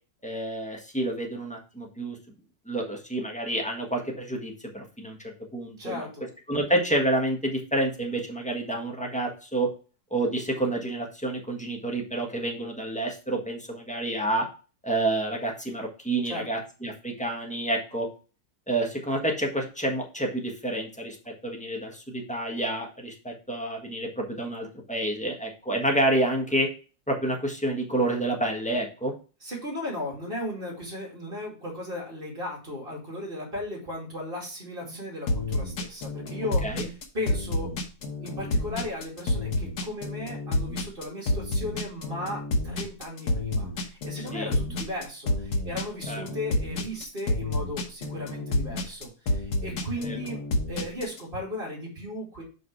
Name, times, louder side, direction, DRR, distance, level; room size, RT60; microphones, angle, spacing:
voice 1, 0.2-2.2 2.7-6.1 6.5-9.7 10.1-14.5 14.8-18.1 18.7-21.2 21.4-26.7 27.1-29.1 36.6-36.9 44.3-44.6 46.1-46.2 50.0-50.2, right 1 dB, 5° left, 0 dB, 1.4 m, -29 dB
voice 2, 5.8-6.2 16.2-16.5 29.4-37.7 38.2-50.4 50.7-52.4, left 1 dB, 35° right, -1 dB, 2.7 m, -36 dB
sound 1, 35.3-51.2, left 2 dB, 90° left, 1.8 m, -29 dB
5.7 x 5.2 x 4.7 m, 0.35 s
omnidirectional pair, 1.7 m